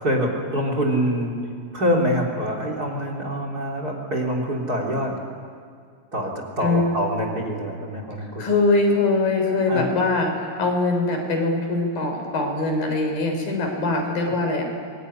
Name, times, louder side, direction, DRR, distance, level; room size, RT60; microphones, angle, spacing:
voice 1, 0.0-5.2 6.1-8.5 9.7-9.9 14.2-14.3, equal, 25° right, 2 dB, 3.5 m, -25 dB
voice 2, 6.6-6.9 8.4-14.6, left 3 dB, 75° left, 3 dB, 5.7 m, -22 dB
25.0 x 21.5 x 10.0 m, 2.2 s
omnidirectional pair, 4.0 m